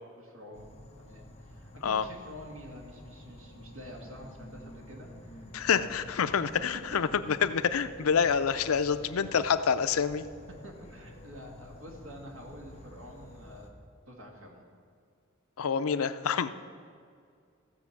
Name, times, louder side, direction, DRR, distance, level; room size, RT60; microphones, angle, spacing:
voice 1, 0.1-0.7 1.0-6.5 10.6-13.7 14.1-14.7, equal, 75° right, 0 dB, 2.1 m, -48 dB
Insect / Frog, 0.5-13.7, left 1 dB, 30° left, 1.1 m, -50 dB
voice 2, 5.5-10.2 15.6-16.5, left 6 dB, 85° left, 12 dB, 0.5 m, -27 dB
15.0 x 5.3 x 7.2 m, 2.2 s
head